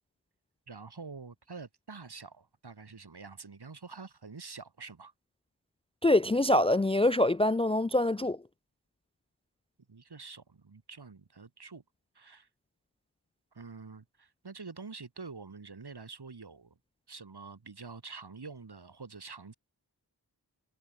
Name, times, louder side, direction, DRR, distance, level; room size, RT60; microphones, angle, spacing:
voice 1, 0.7-5.1 9.9-11.8 12.1-12.5 13.5-16.8 17.1-19.5, right 4 dB, 65° right, 2.1 m, -47 dB
voice 2, 6.0-8.4, left 1 dB, 15° left, 0.3 m, -25 dB
wide cardioid pair, 40°, 43 cm